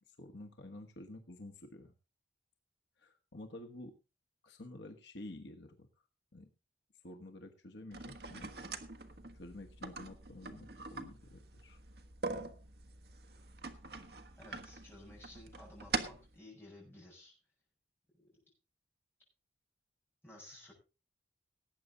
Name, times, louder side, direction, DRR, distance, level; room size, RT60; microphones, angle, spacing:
voice 1, 0.1-1.9 3.0-3.9 4.4-5.9 6.3-6.5 7.0-8.5 9.3-11.8, left 1 dB, 70° left, 4 dB, 1.3 m, -50 dB
sound 1, 7.9-16.3, right 4 dB, 55° right, 1.3 m, -44 dB
voice 2, 14.3-17.3 18.2-18.3 20.2-20.7, left 1 dB, 10° left, -3 dB, 6.6 m, -55 dB
18.5 x 8.6 x 3.9 m, 0.30 s
head